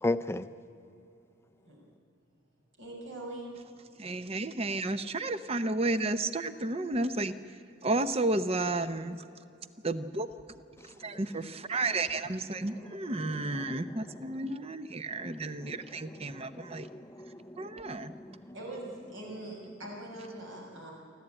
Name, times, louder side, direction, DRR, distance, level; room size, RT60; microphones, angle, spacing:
voice 1, 0.0-0.5 13.7-13.8 14.4-14.5 15.6-15.7 16.2-18.5, left 2 dB, 15° left, 12 dB, 0.5 m, -36 dB
voice 2, 2.8-3.6 18.5-20.9, right 1 dB, 70° right, -1 dB, 5.8 m, -42 dB
voice 3, 4.0-7.3 7.8-9.2 9.8-10.3 11.0-16.9 17.6-18.1, right 2 dB, 30° right, 12 dB, 0.8 m, -32 dB
29.5 x 12.0 x 9.0 m, 2.7 s
head